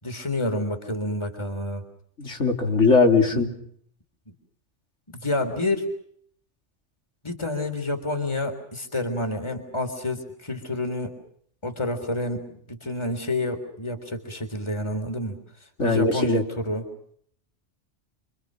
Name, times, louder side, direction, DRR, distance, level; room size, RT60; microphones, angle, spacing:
voice 1, 0.0-1.9 3.3-3.5 5.1-5.9 7.2-11.2 11.6-15.4 15.8-16.8, left 1 dB, 25° left, 6 dB, 3.7 m, -29 dB
voice 2, 2.2-3.5 15.8-16.4, left 4 dB, 90° left, 3 dB, 3.7 m, -20 dB
29.0 x 25.5 x 6.4 m, 0.66 s
omnidirectional pair, 1.2 m